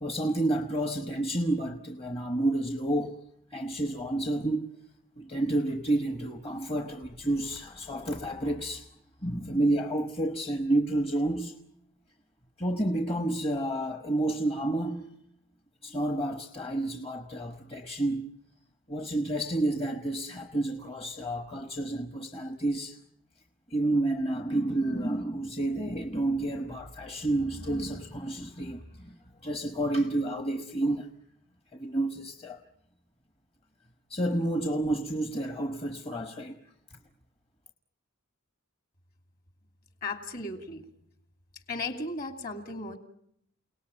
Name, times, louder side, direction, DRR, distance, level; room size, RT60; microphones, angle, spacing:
voice 1, 0.0-3.2 3.5-4.7 5.2-8.9 9.2-11.6 12.6-15.1 15.8-18.3 18.9-23.0 23.7-29.1 29.4-31.1 31.7-32.6 34.1-36.6, right 1 dB, 25° left, 1.2 m, -30 dB
voice 2, 40.0-40.9 41.7-43.0, left 2 dB, 45° left, 2.8 m, -35 dB
29.5 x 18.5 x 9.0 m
head